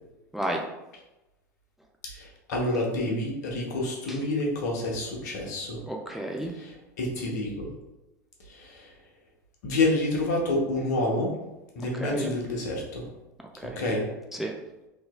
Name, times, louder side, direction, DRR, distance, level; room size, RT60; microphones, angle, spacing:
voice 1, 0.3-0.6 4.1-4.2 5.9-6.6 11.8-12.3 13.6-13.8 14.3-14.5, right 1 dB, 5° right, 1 dB, 0.3 m, -32 dB
voice 2, 2.0-5.8 6.6-6.7 7.0-7.7 8.5-8.9 9.6-11.3 11.8-13.1 13.8-14.1, left 2 dB, 70° left, -1 dB, 0.8 m, -28 dB
3.1 x 2.7 x 2.2 m, 1.0 s
hypercardioid pair, 85°, 10 cm